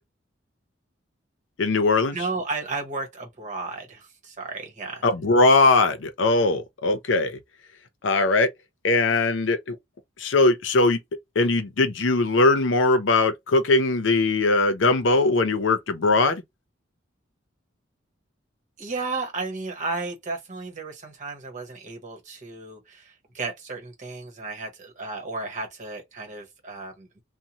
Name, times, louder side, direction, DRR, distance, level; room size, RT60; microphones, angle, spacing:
voice 1, 1.6-2.2 5.0-7.4 8.0-8.5 8.8-9.8 10.2-11.0 11.4-16.4, left 3 dB, 90° left, 0.6 m, -20 dB
voice 2, 2.1-5.0 18.8-27.2, right 3 dB, 40° right, 1.1 m, -33 dB
2.7 x 2.1 x 2.9 m
head